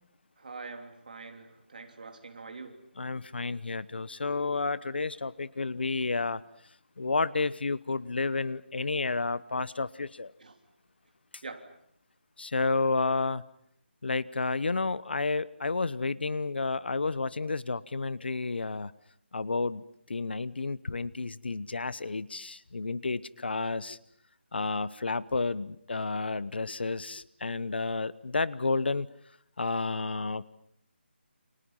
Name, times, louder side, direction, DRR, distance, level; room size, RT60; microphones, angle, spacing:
voice 1, 0.4-2.8 10.4-10.6 11.4-11.7, right 4 dB, 45° right, 5 dB, 3.3 m, -44 dB
voice 2, 3.0-6.4 7.0-10.3 12.4-13.4 14.0-18.9 19.3-19.8 20.1-24.0 24.5-29.1 29.6-30.6, left 3 dB, 60° left, 19 dB, 1.0 m, -31 dB
29.5 x 27.5 x 5.7 m, 0.69 s
figure-of-eight pair, 175°, 6 cm